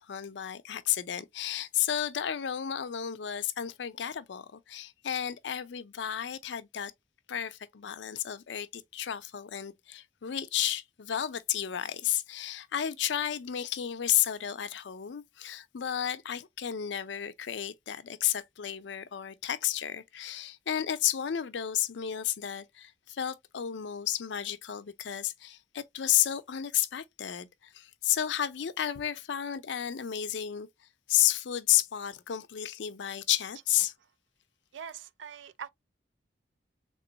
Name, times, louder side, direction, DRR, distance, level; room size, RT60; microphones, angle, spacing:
voice 1, 0.0-6.9 7.3-30.7 31.1-33.9, left 11 dB, 80° left, 0.5 m, -32 dB
voice 2, 34.7-35.7, right 7 dB, 85° right, 0.4 m, -42 dB
3.7 x 3.0 x 2.6 m
head